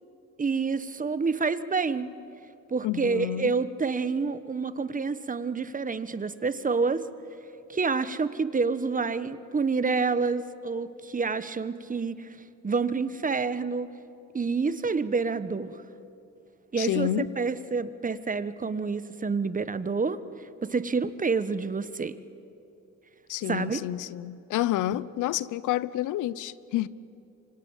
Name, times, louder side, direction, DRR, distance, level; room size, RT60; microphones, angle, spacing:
voice 1, 0.4-2.1 2.7-7.1 7.7-12.3 12.6-13.9 14.3-15.8 16.7-20.2 20.7-22.2 23.4-23.8, right 4 dB, 25° right, 1.2 m, -28 dB
voice 2, 2.8-3.5 16.8-17.3 23.3-26.9, left 13 dB, 85° left, 0.8 m, -29 dB
27.0 x 25.0 x 7.3 m
cardioid pair, 90°, 30 cm